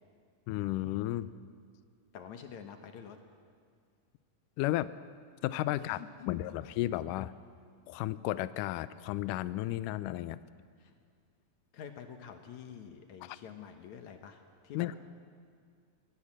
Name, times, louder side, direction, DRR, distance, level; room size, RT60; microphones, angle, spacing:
voice 1, 0.5-1.3 4.6-4.9 5.4-6.0 6.3-7.3 7.9-10.4 13.2-13.4 14.8-14.9, left 15 dB, 80° left, 15 dB, 1.9 m, -33 dB
voice 2, 2.1-3.2 5.8-6.3 10.8-10.9 11.7-15.0, left 8 dB, 65° left, 6 dB, 2.1 m, -47 dB
24.0 x 18.0 x 7.4 m, 2.1 s
omnidirectional pair, 4.4 m